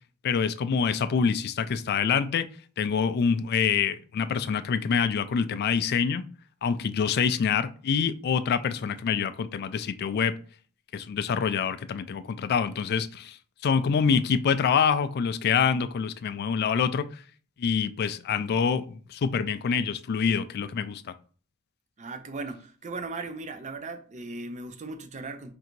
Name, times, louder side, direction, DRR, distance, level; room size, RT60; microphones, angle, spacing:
voice 1, 0.2-2.5 2.8-6.2 6.6-10.3 10.9-13.4 13.6-17.1 17.6-21.0, left 6 dB, 50° left, 0.3 m, -26 dB
voice 2, 22.0-25.5, right 3 dB, 35° right, 0.5 m, -37 dB
3.7 x 2.6 x 4.4 m
head